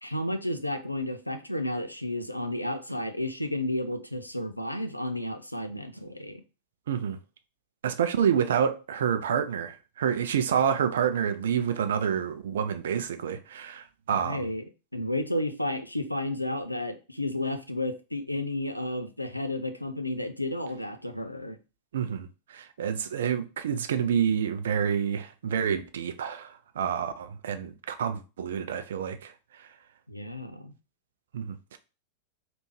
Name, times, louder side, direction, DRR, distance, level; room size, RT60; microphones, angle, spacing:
voice 1, 0.0-6.4 14.1-14.6 14.9-21.6 30.1-30.7, left 1 dB, 90° left, 0.4 m, -32 dB
voice 2, 6.9-7.2 7.8-14.5 21.9-29.7 31.3-31.8, right 8 dB, 60° right, 0.4 m, -28 dB
3.3 x 2.5 x 3.2 m
figure-of-eight pair, 90°, 0 cm